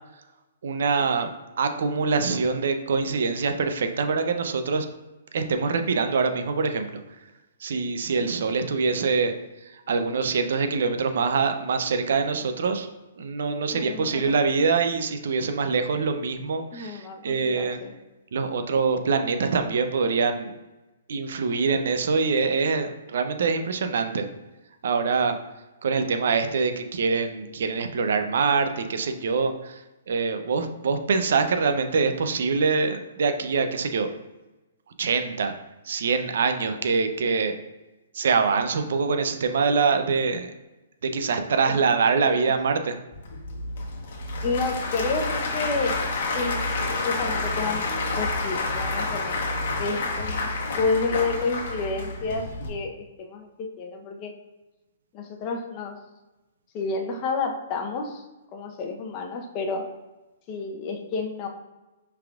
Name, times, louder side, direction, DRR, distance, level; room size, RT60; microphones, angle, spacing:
voice 1, 0.6-1.3 1.6-4.9 5.3-7.0 7.6-9.3 9.9-12.9 13.2-17.8 18.3-20.5 21.1-24.3 24.8-25.4 25.8-34.1 35.0-35.5 35.9-37.6 38.1-40.5 41.0-43.0, right 5 dB, 70° right, 7 dB, 0.5 m, -24 dB
voice 2, 13.7-14.4 16.7-17.9 41.7-42.5 44.4-46.0 46.3-46.6 47.0-47.9 48.1-49.4 49.8-50.5 50.8-54.3 55.1-56.0 56.7-58.2 58.5-59.9 60.5-61.5, left 4 dB, 35° left, 2 dB, 0.7 m, -30 dB
Applause / Crowd, 43.1-52.7, left 2 dB, 65° left, 1.1 m, -29 dB
5.6 x 3.5 x 2.4 m, 1.1 s
hypercardioid pair, 135°, 0 cm